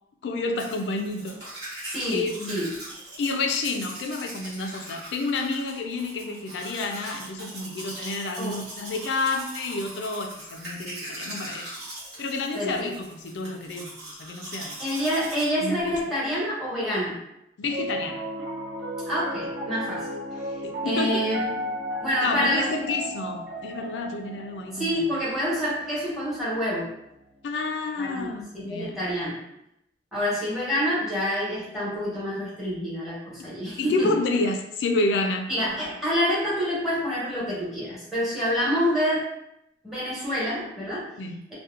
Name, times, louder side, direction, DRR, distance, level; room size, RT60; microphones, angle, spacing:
voice 1, 0.2-2.7 3.2-11.8 12.2-13.9 14.2-14.8 15.6-15.9 17.6-18.2 20.6-21.2 22.2-25.0 27.4-29.0 33.8-35.5 41.2-41.4, left 3 dB, 80° left, 5 dB, 0.3 m, -29 dB
Domestic sounds home sounds, 0.6-15.4, right 1 dB, 65° right, 1.1 m, -40 dB
voice 2, 1.9-2.7 8.4-8.6 12.5-12.9 14.8-17.2 19.1-20.1 20.8-21.5 22.0-22.9 24.7-26.9 28.0-29.4 30.1-34.2 35.5-39.3 39.8-41.1, equal, ahead, -9 dB, 1.0 m, -27 dB
Piano, 17.6-28.0, equal, 90° right, 0.7 m, -35 dB
2.8 x 2.1 x 2.4 m, 0.80 s
head